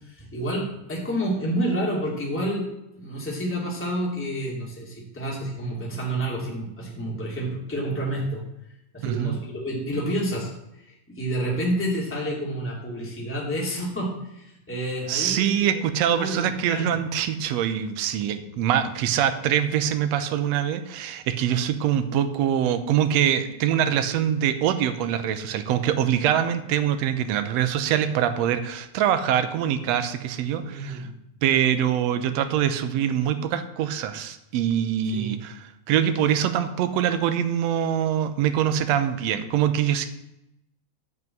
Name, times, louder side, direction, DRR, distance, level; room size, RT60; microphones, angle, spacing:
voice 1, 0.0-2.6 2.9-8.4 8.9-15.5 16.1-17.0 30.6-31.1 35.1-35.4, right 1 dB, 5° left, -4 dB, 2.5 m, -29 dB
voice 2, 9.0-9.4 15.1-31.1 31.4-35.6 35.9-40.1, right 9 dB, 70° right, 10 dB, 1.7 m, -24 dB
11.0 x 5.5 x 7.8 m, 0.84 s
omnidirectional pair, 3.7 m